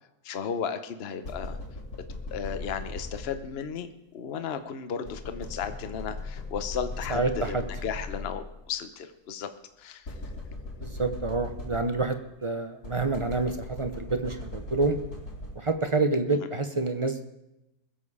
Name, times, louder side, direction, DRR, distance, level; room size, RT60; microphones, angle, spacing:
voice 1, 0.2-1.6 2.3-3.9 4.1-9.5 9.8-10.1, left 7 dB, 45° left, 9 dB, 1.0 m, -34 dB
sound 1, 1.2-3.7 5.0-8.6 10.0-12.2 12.8-15.9, left 2 dB, 75° left, 4.5 m, -39 dB
voice 2, 7.1-7.6 10.8-15.0 15.5-17.2, right 3 dB, 35° right, 8 dB, 0.5 m, -28 dB
21.5 x 7.6 x 4.9 m, 0.91 s
omnidirectional pair, 1.6 m